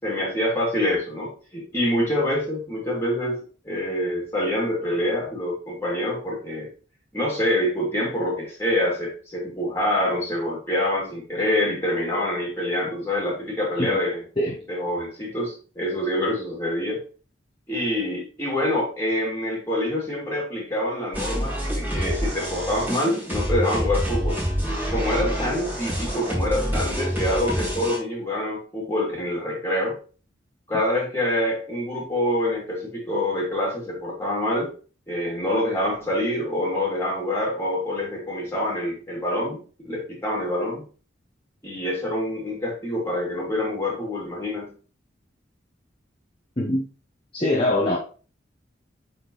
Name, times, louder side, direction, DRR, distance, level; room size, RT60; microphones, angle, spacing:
voice 1, 0.0-3.4 3.6-6.7 7.1-14.2 14.7-17.0 17.7-24.4 24.9-30.0 30.7-34.7 35.1-39.6 39.8-40.8 41.6-44.7, left 1 dB, 15° left, 3.3 m, -26 dB
sound 1, 21.1-28.0, equal, 10° right, 3.5 m, -27 dB
voice 2, 46.6-46.9 47.3-48.0, left 1 dB, 30° left, 1.1 m, -23 dB
8.6 x 4.4 x 3.4 m
head